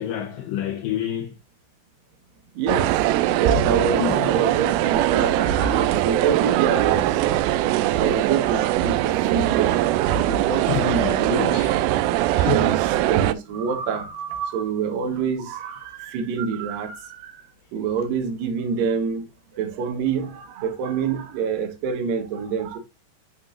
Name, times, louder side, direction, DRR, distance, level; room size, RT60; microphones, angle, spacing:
voice 1, 0.0-1.3 3.5-5.4 5.8-6.6 7.3-7.9 10.0-10.1 10.7-12.0 12.3-12.9, left 11 dB, 80° left, 2.0 m, -31 dB
voice 2, 2.6-2.9 3.3-7.1 8.0-9.8 10.2-11.3 12.5-17.4 17.7-19.2 19.5-22.8, right 6 dB, 65° right, 2.6 m, -26 dB
sound 1, 2.7-13.3, right 13 dB, 90° right, 2.1 m, -21 dB
11.0 x 3.8 x 2.5 m
omnidirectional pair, 4.7 m